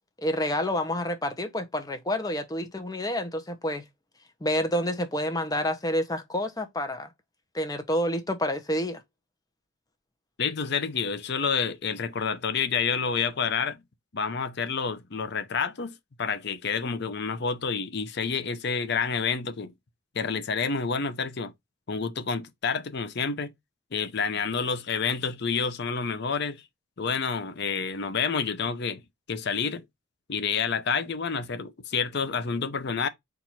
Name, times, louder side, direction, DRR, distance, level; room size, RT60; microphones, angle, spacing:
voice 1, 0.2-3.8 4.4-7.1 7.5-9.0, left 1 dB, 20° left, 0.7 m, -28 dB
voice 2, 10.4-13.8 14.1-19.7 20.1-21.5 21.9-23.5 23.9-26.6 27.0-29.0 29.3-29.8 30.3-33.1, left 5 dB, 55° left, 0.6 m, -29 dB
4.5 x 2.6 x 4.2 m
head